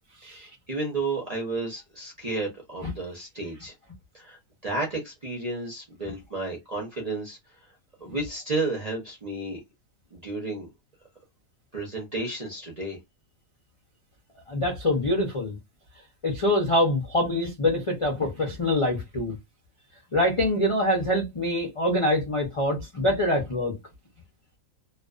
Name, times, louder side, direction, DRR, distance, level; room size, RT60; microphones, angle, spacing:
voice 1, 0.2-3.7 4.1-4.4 4.6-7.4 8.0-9.6 10.1-10.7 11.7-13.0, right 2 dB, 40° right, 0.6 m, -32 dB
voice 2, 14.5-15.6 16.2-19.3 20.1-23.7, left 1 dB, 45° left, 0.4 m, -25 dB
2.4 x 2.3 x 2.3 m
omnidirectional pair, 1.6 m